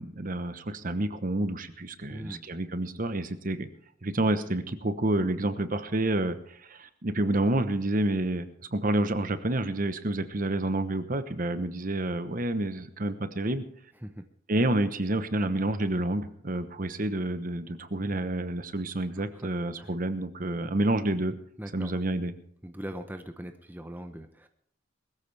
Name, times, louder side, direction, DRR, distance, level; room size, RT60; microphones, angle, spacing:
voice 1, 0.0-3.7 4.0-13.6 14.5-21.3 21.7-22.3, right 1 dB, 45° right, 10 dB, 1.1 m, -29 dB
voice 2, 2.1-2.4 14.0-14.2 19.2-19.5 19.8-19.9 21.6-22.0 22.6-24.5, equal, 10° right, 7 dB, 0.8 m, -40 dB
21.0 x 14.0 x 3.4 m, 0.64 s
head